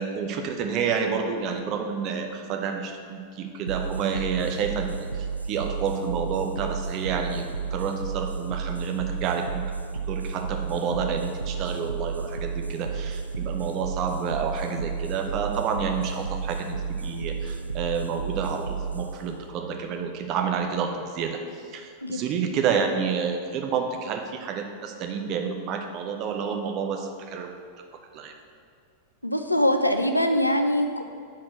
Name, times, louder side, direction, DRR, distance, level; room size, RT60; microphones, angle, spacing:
voice 1, 0.0-9.6 10.1-27.6 28.1-28.3, right 6 dB, 40° right, 4 dB, 0.7 m, -29 dB
sound 1, 3.7-20.7, right 5 dB, 85° right, 0.3 m, -32 dB
voice 2, 29.2-31.0, left 1 dB, 85° left, 6 dB, 0.4 m, -23 dB
5.8 x 4.4 x 6.2 m, 2.2 s
figure-of-eight pair, 90°, 0 cm